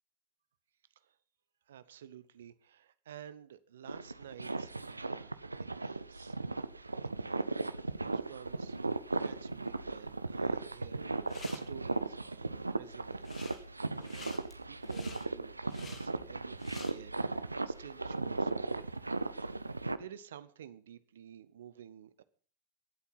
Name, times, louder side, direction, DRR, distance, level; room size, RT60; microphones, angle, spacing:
voice 1, 1.7-6.4 7.0-7.4 7.9-8.8 9.2-13.5 13.9-17.1 17.4-18.8 19.4-22.2, right 9 dB, 60° right, 1.0 m, -52 dB
sound 1, 3.9-20.0, right 3 dB, 80° right, 0.7 m, -37 dB
sound 2, 11.2-11.6 13.1-13.6 13.9-16.9, left 5 dB, 25° left, 3.0 m, -50 dB
23.5 x 8.4 x 5.6 m
figure-of-eight pair, 90°, 0 cm